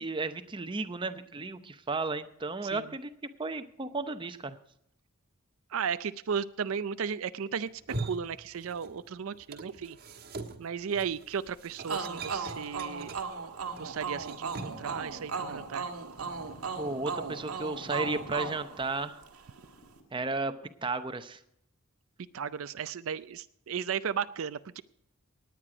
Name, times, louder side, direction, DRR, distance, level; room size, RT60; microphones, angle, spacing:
voice 1, 0.0-3.1 3.4-4.6 16.8-19.2 20.1-20.5 20.8-21.4, right 3 dB, 20° right, 10 dB, 0.7 m, -34 dB
voice 2, 2.6-3.0 5.7-7.7 8.0-10.0 10.6-13.2 13.8-15.9 22.3-24.8, right 7 dB, 70° right, 13 dB, 0.5 m, -35 dB
sound 1, 7.7-9.1 9.3-14.9, right 2 dB, 45° right, 1.4 m, -42 dB
sound 2, 11.9-19.5, right 5 dB, 85° right, 1.6 m, -37 dB
sound 3, 13.7-20.4, equal, 65° left, 3.8 m, -52 dB
18.5 x 9.3 x 5.0 m, 0.75 s
head